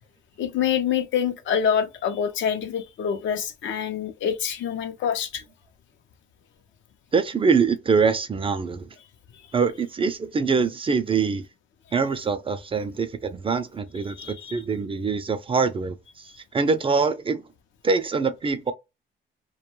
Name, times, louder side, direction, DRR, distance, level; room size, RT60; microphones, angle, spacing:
voice 1, 0.4-5.4 14.2-14.6, left 8 dB, 70° left, 0.6 m, -26 dB
voice 2, 7.1-8.9 9.5-11.5 11.9-17.4 17.8-18.7, right 5 dB, 25° right, 0.4 m, -24 dB
2.2 x 2.2 x 3.0 m
cardioid pair, 90°, 20 cm